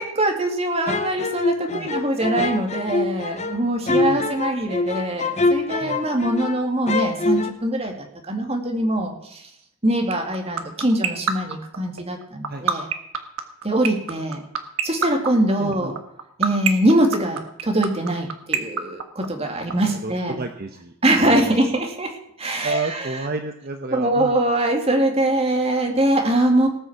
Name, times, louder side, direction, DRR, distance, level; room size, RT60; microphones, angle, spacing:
voice 1, 0.0-9.4 9.8-12.9 13.6-14.4 14.8-15.9 16.4-20.4 21.0-23.2 23.9-26.7, right 1 dB, 25° right, 3 dB, 2.3 m, -22 dB
sound 1, 0.9-6.6 6.9-7.5, left 3 dB, 30° left, 0.8 m, -24 dB
voice 2, 3.9-4.2 5.8-6.0 12.5-12.6 15.6-15.9 19.6-20.9 21.3-21.5 22.6-24.4, right 3 dB, 45° right, 5 dB, 0.9 m, -31 dB
sound 2, 10.1-19.7, right 7 dB, 70° right, 1.4 m, -21 dB
18.5 x 6.4 x 7.2 m, 0.75 s
head